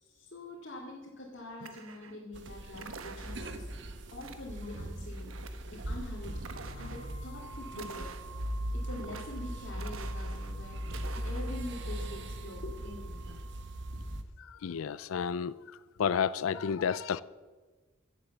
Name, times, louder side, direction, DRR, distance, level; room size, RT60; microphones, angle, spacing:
voice 1, 0.0-3.7 4.1-5.3 5.7-6.4 6.7-8.2 8.7-13.4, left 1 dB, 55° left, 2.3 m, -45 dB
sound 1, 1.6-2.2 2.7-3.6 4.2-4.8 5.1-5.9 6.4-7.1 7.7-8.5 8.9-9.5 9.7-10.5 10.8-11.5, right 4 dB, 85° right, 1.1 m, -48 dB
sound 2, 2.3-14.2, equal, 60° right, 1.1 m, -39 dB
voice 2, 14.4-15.5 16.0-17.2, left 7 dB, 85° left, 0.4 m, -31 dB
15.0 x 8.4 x 7.0 m
head